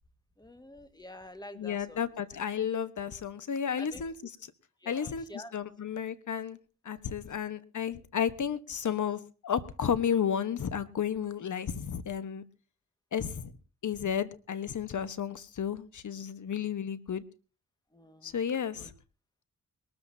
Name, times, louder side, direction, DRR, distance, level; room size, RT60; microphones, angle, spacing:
voice 1, 0.4-2.1 3.8-4.0 4.8-5.6 17.9-18.4 18.8-18.9, left 1 dB, 10° left, 1.7 m, -48 dB
voice 2, 1.5-4.1 4.8-6.6 6.8-12.4 13.1-13.5 13.8-17.2 18.2-18.9, left 8 dB, 55° left, 1.2 m, -32 dB
22.0 x 13.5 x 2.8 m
cardioid pair, 75°, 36 cm